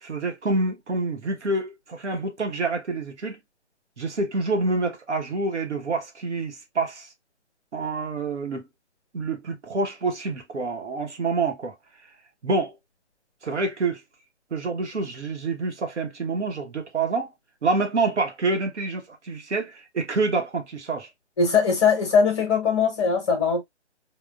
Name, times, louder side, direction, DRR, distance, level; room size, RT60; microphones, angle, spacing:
voice 1, 0.0-3.4 4.0-7.1 7.7-8.7 9.1-11.7 12.4-12.7 13.4-14.0 14.5-17.3 17.6-21.1, right 3 dB, 75° right, 1.1 m, -27 dB
voice 2, 21.4-23.6, left 5 dB, 25° left, 1.1 m, -21 dB
3.9 x 2.4 x 2.3 m
figure-of-eight pair, 155°, 35 cm